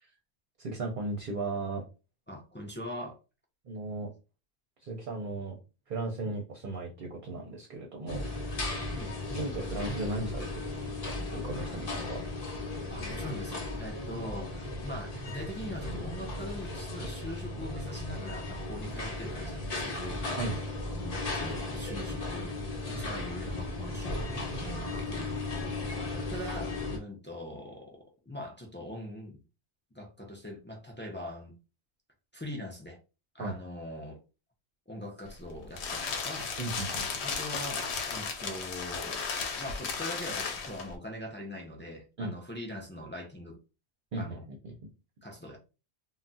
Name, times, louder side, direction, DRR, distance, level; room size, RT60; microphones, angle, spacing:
voice 1, 0.6-1.8 3.6-4.1 4.8-5.6 5.9-8.3 9.3-10.7 11.0-12.2 20.4-20.6 24.8-25.1 33.4-33.6 36.6-37.1 42.2-42.3 44.1-44.4 44.6-44.7, right 2 dB, 55° right, 0.8 m, -36 dB
voice 2, 2.3-3.2 6.2-6.4 8.9-9.1 12.9-20.2 21.0-22.6 22.9-29.4 29.9-31.5 32.3-33.0 33.3-34.2 34.9-36.5 37.2-39.3 39.6-43.6 44.2-44.4 45.2-45.6, left 1 dB, 15° left, 0.3 m, -42 dB
sound 1, 8.1-27.0, left 2 dB, 40° left, 0.7 m, -36 dB
sound 2, 35.3-41.0, left 5 dB, 80° left, 0.8 m, -35 dB
2.3 x 2.1 x 3.9 m
omnidirectional pair, 1.1 m